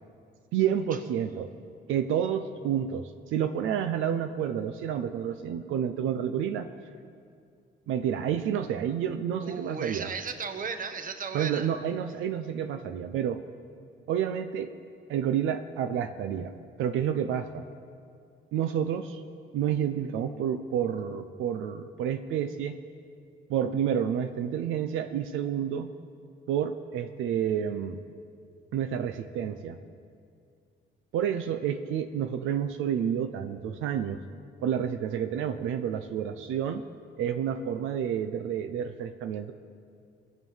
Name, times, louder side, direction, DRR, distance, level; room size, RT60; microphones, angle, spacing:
voice 1, 0.5-1.5 1.9-6.7 7.9-10.1 11.3-13.4 14.1-14.7 15.1-16.5 16.8-17.6 18.5-19.2 19.5-22.7 23.5-25.9 26.5-28.0 28.7-29.8 31.1-34.2 34.6-36.8 37.2-39.5, right 9 dB, 85° right, 8 dB, 0.6 m, -29 dB
voice 2, 9.4-11.7, right 5 dB, 45° right, 7 dB, 1.2 m, -35 dB
21.5 x 7.5 x 5.6 m, 2.3 s
cardioid pair, 90°, 20 cm